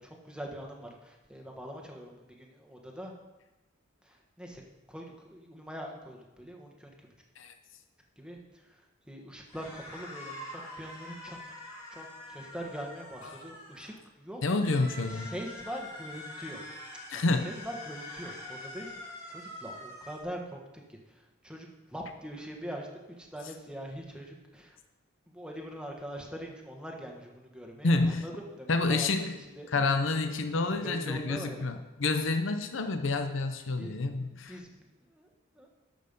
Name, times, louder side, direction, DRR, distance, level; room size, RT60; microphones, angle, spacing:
voice 1, 0.0-3.1 4.0-4.6 4.9-7.1 8.2-11.4 11.9-14.4 14.9-16.6 17.4-20.6 20.9-24.8 25.3-29.7 30.2-30.3 30.8-31.7 33.7-35.3 35.5-35.7, equal, 5° right, 1 dB, 1.4 m, -43 dB
sound 1, 9.5-14.0 14.5-20.2, left 1 dB, 20° left, 2.4 m, -45 dB
voice 2, 14.4-15.3 17.1-17.5 27.8-28.2 28.7-29.4 29.7-34.6, left 3 dB, 65° left, 7 dB, 0.7 m, -28 dB
12.0 x 6.6 x 5.3 m, 1.1 s
head